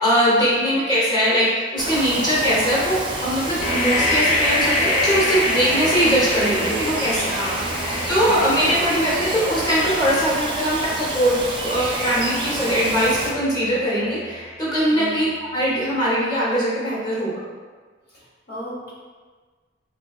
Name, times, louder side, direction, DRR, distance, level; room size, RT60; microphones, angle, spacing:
voice 1, 0.0-7.3 8.1-17.3, equal, 20° left, -7 dB, 1.0 m, -21 dB
Bird vocalization bird call bird song, 1.8-13.3, right 2 dB, 25° right, 0.4 m, -29 dB
sound 1, 3.6-15.4, left 1 dB, 40° left, 0.5 m, -27 dB
voice 2, 7.3-7.9 8.2-8.4 14.9-15.2 18.1-18.9, left 1 dB, 55° left, -6 dB, 1.0 m, -34 dB
3.2 x 3.0 x 2.3 m, 1.4 s
head